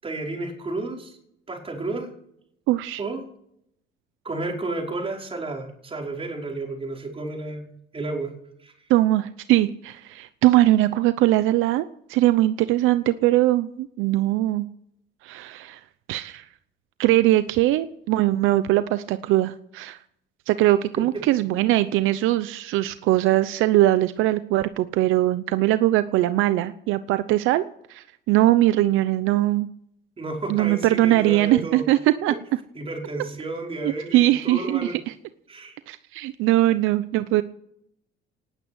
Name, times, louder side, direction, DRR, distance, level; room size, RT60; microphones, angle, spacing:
voice 1, 0.0-1.2 1.5-2.1 3.0-3.2 4.2-8.3 8.6-8.7 30.2-31.8 32.8-35.0 35.5-35.8, right 2 dB, 25° right, 0 dB, 5.3 m, -32 dB
voice 2, 2.7-3.0 8.9-14.7 15.2-15.8 16.1-16.4 17.0-20.0 20.5-27.6 27.9-29.7 30.5-32.3 33.8-35.1 35.9-37.4, right 15 dB, 80° right, 13 dB, 0.8 m, -21 dB
19.0 x 9.1 x 8.1 m, 0.73 s
cardioid pair, 110°, 20 cm